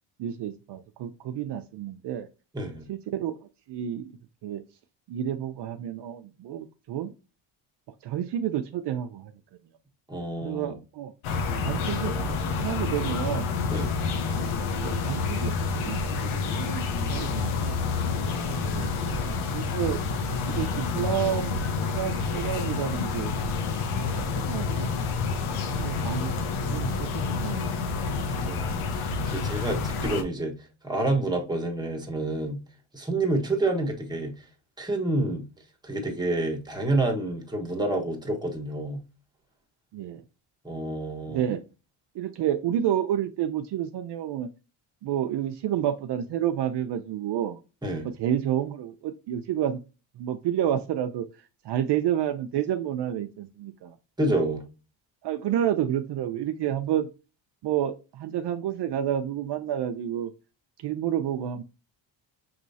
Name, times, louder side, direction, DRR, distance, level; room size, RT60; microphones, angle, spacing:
voice 1, 0.2-2.3 2.9-4.1 4.4-4.6 5.1-7.1 8.0-9.3 10.4-11.1 11.6-13.5 14.3-14.5 14.7-17.8 18.7-19.0 19.5-20.0 20.5-21.6 21.9-23.3 24.1-24.9 25.7-26.3 26.7-27.7 28.2-28.4 39.9-40.2 41.3-41.6 42.1-44.5 45.0-47.6 48.0-49.8 50.2-54.0 55.2-57.1 57.6-60.3 60.8-61.6, right 10 dB, 60° right, 0.6 m, -30 dB
voice 2, 2.5-2.8 10.1-10.8 13.7-13.9 18.1-18.9 28.4-30.5 30.8-32.6 32.9-34.3 34.8-35.4 35.8-39.0 40.6-41.5 47.8-48.1 54.2-54.6, right 2 dB, 10° right, 1.4 m, -28 dB
sound 1, 11.2-30.2, left 4 dB, 85° left, 1.1 m, -28 dB
5.9 x 3.0 x 2.7 m
cardioid pair, 110°, 48 cm